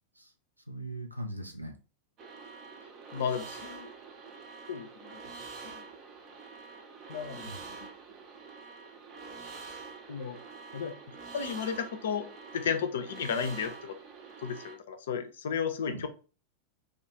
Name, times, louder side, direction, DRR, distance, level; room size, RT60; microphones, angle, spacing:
voice 1, 0.7-1.8 7.4-7.6 15.8-16.1, right 1 dB, 85° right, 3 dB, 0.4 m, -39 dB
sound 1, 2.2-14.8, right 4 dB, 35° right, 0.5 m, -46 dB
voice 2, 3.1-3.9 4.7-5.2 5.6-5.8 7.1-7.5 10.1-10.4 10.7-10.9 11.3-12.3 12.5-14.0 14.4-16.1, left 7 dB, 60° left, 8 dB, 0.4 m, -33 dB
2.2 x 2.1 x 2.9 m, 0.36 s
figure-of-eight pair, 90°, 0 cm